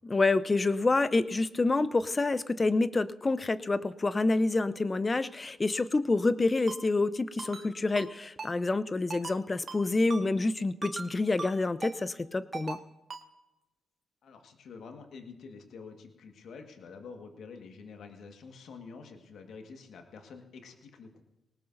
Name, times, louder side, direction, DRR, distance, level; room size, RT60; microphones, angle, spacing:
voice 1, 0.0-12.8, left 3 dB, 30° left, 15 dB, 0.7 m, -27 dB
Ringtone, 6.7-6.8 7.4-7.7 8.0-8.1 8.4-8.5 9.1-9.4 9.7-9.8 10.1-10.2 10.8-11.1 11.4-11.5 11.8-12.0 12.5-12.8 13.1-13.2, right 4 dB, 45° right, 1.7 m, -39 dB
voice 2, 14.2-21.2, left 5 dB, 70° left, 4 dB, 1.6 m, -48 dB
19.0 x 18.0 x 2.7 m, 0.97 s
supercardioid pair, 50°, 0 cm